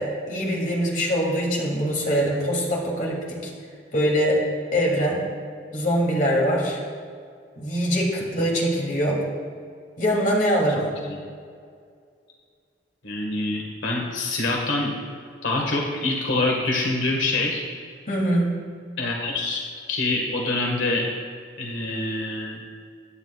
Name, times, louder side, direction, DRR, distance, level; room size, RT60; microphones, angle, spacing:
voice 1, 0.0-3.5 3.9-4.4 4.7-5.2 5.7-6.8 7.6-9.2 10.0-11.0 18.1-18.6, equal, 45° left, -3 dB, 2.9 m, -23 dB
voice 2, 10.7-11.2 13.0-14.9 15.4-17.6 19.0-19.6 19.9-21.1 21.6-22.6, left 2 dB, 85° left, 0 dB, 1.7 m, -25 dB
22.5 x 9.6 x 2.4 m, 2.2 s
head